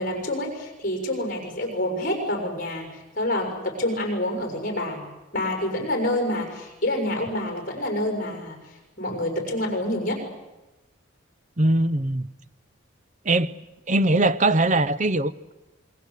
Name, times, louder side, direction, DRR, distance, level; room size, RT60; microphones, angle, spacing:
voice 1, 0.0-2.9 3.1-5.0 5.3-8.6 9.0-10.2, left 1 dB, 40° left, 3 dB, 6.4 m, -27 dB
voice 2, 11.6-12.3 13.2-13.5 13.9-15.5, right 2 dB, 35° right, 15 dB, 0.8 m, -21 dB
27.5 x 22.0 x 8.4 m, 1.0 s
head